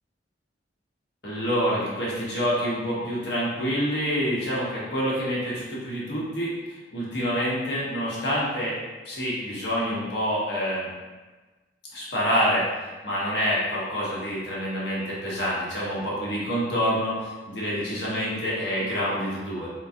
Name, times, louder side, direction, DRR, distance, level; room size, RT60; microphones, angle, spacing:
voice 1, 1.2-6.6 6.9-8.8 9.0-10.9 11.9-19.7, equal, 65° left, -6 dB, 1.3 m, -27 dB
3.8 x 3.8 x 2.8 m, 1.3 s
head